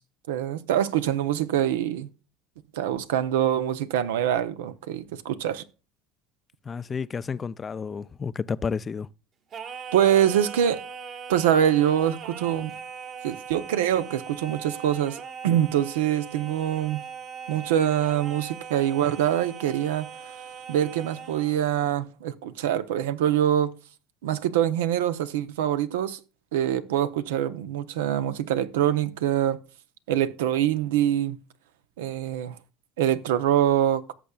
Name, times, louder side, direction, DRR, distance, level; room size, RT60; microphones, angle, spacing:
voice 1, 0.3-2.1 2.7-5.6 9.9-10.8 11.3-12.7 13.2-17.1 17.5-20.1 20.7-23.8 24.2-26.2 26.5-29.6 30.1-31.4 32.0-32.6 33.0-34.1, right 10 dB, 85° right, 0.7 m, -24 dB
voice 2, 6.7-9.1, left 5 dB, 30° left, 0.4 m, -31 dB
Singing, 9.5-21.6, right 6 dB, 45° right, 1.6 m, -40 dB
17.0 x 6.8 x 2.3 m
supercardioid pair, 95°, 0 cm